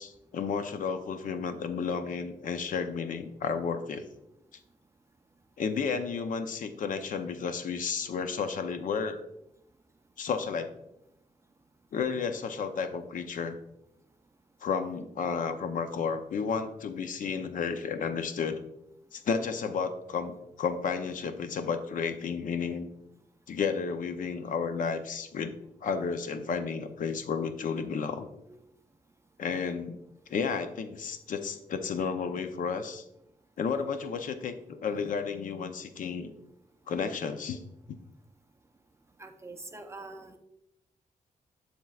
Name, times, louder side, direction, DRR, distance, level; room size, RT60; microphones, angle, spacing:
voice 1, 0.0-4.0 5.6-9.2 10.2-10.7 11.9-13.6 14.6-18.6 19.1-22.9 23.5-25.5 25.8-28.3 29.4-30.0 30.3-33.0 33.6-36.3 36.9-37.6, left 5 dB, 70° left, 9 dB, 0.6 m, -32 dB
voice 2, 39.2-40.4, right 2 dB, 20° right, 6 dB, 0.4 m, -44 dB
7.5 x 7.0 x 2.4 m, 0.84 s
wide cardioid pair, 150°, 14 cm